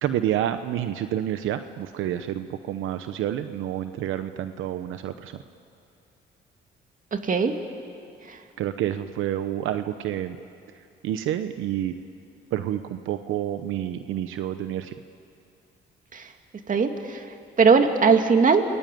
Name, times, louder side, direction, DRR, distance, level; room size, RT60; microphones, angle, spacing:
voice 1, 0.0-5.4 8.6-10.4 11.0-11.9 12.5-14.9, right 11 dB, 85° right, 10 dB, 0.9 m, -29 dB
voice 2, 7.2-7.5 16.1-16.2 16.7-17.2 17.6-18.6, right 5 dB, 40° right, 5 dB, 2.4 m, -19 dB
30.0 x 21.5 x 9.2 m, 2.6 s
cardioid pair, 90°, 20 cm